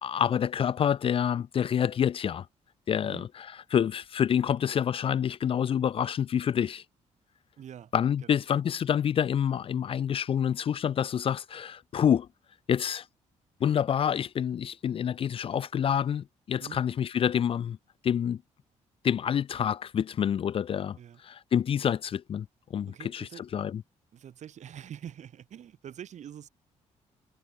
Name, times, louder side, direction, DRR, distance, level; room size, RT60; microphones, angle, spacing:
voice 1, 0.0-2.5 2.9-3.5 3.7-6.8 7.9-12.3 12.7-13.1 13.6-17.8 18.0-18.4 19.0-21.0 21.2-23.8, left 8 dB, 45° left, 0.4 m, -27 dB
voice 2, 7.6-7.9 8.2-8.4 16.6-16.8 21.0-21.2 22.9-23.5 24.1-26.5, right 9 dB, 60° right, 2.2 m, -45 dB
cardioid pair, 95°, 13 cm